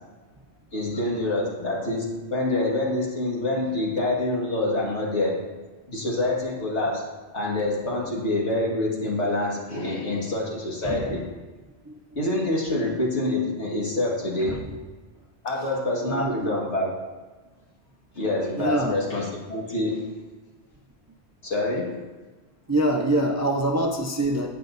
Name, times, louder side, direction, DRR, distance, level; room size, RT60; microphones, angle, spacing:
voice 1, 0.7-5.5 5.9-11.3 12.2-14.7 15.4-17.0 18.1-20.1 21.4-22.1, left 2 dB, 70° left, -2 dB, 2.1 m, -26 dB
voice 2, 16.0-16.6 18.6-19.0 22.7-24.5, right 1 dB, 20° right, 1 dB, 0.5 m, -25 dB
17.0 x 5.8 x 2.6 m, 1.3 s
omnidirectional pair, 1.2 m